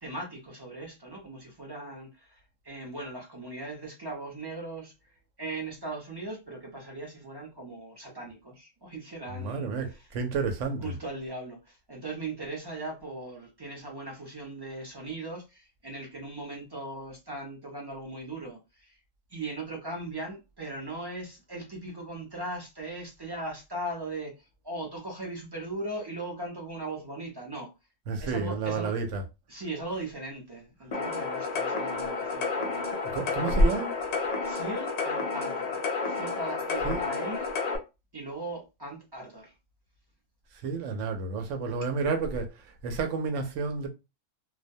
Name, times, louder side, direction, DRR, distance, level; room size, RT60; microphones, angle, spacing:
voice 1, 0.0-10.1 10.8-19.0 19.3-27.7 28.2-28.9 29.5-32.9 34.4-37.5 38.1-39.5, right 2 dB, 30° right, 0.4 m, -39 dB
voice 2, 9.3-11.0 28.1-29.3 33.1-34.0 36.8-37.0 40.6-43.9, right 3 dB, 75° right, 0.9 m, -29 dB
sound 1, 30.9-37.8, left 4 dB, 90° left, 0.3 m, -31 dB
2.3 x 2.1 x 2.6 m
omnidirectional pair, 1.3 m